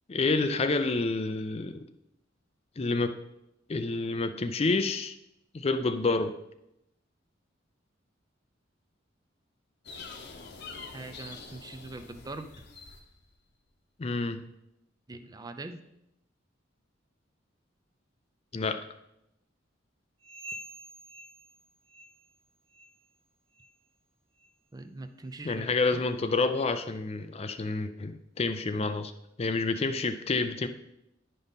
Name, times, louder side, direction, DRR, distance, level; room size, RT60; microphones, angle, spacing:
voice 1, 0.1-1.8 2.8-3.2 3.7-5.1 5.5-6.4 14.0-14.4 18.5-18.8 25.4-29.1 29.4-30.7, left 3 dB, 30° left, 9 dB, 0.4 m, -28 dB
sound 1, 9.9-13.4, left 4 dB, 60° left, 0.9 m, -46 dB
voice 2, 10.9-12.5 15.1-15.8 24.7-26.0, right 2 dB, 20° right, 8 dB, 0.5 m, -42 dB
sound 2, 20.2-22.4 22.7-23.1 23.5-23.8 24.4-24.5 25.2-25.3 26.1-26.2, equal, 85° right, 1.2 m, -47 dB
10.0 x 5.3 x 4.0 m, 0.84 s
head